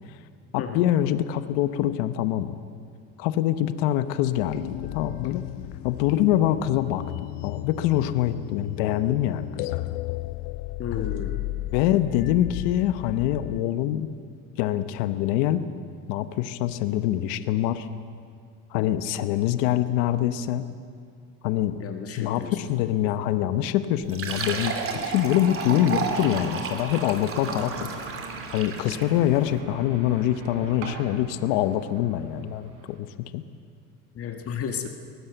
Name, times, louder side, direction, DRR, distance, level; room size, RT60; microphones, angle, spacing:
voice 1, 0.5-2.6 3.2-5.5 5.8-7.0 7.4-9.7 11.7-14.1 14.6-15.6 16.1-17.9 18.7-20.7 21.4-21.8 22.2-24.8 25.0-27.7 28.5-33.4, left 12 dB, 90° left, 11 dB, 1.1 m, -24 dB
sound 1, 4.4-13.6, left 18 dB, 70° left, 0.6 m, -34 dB
voice 2, 10.8-11.4 21.8-22.8 23.0-23.3 34.2-34.9, left 7 dB, 45° left, 4 dB, 1.9 m, -33 dB
Fill (with liquid), 24.0-29.2, right 5 dB, 40° right, 2.9 m, -32 dB
sound 2, 25.7-33.0, right 4 dB, 85° right, 4.7 m, -42 dB
22.5 x 18.5 x 8.0 m, 2.2 s
cardioid pair, 115°, 34 cm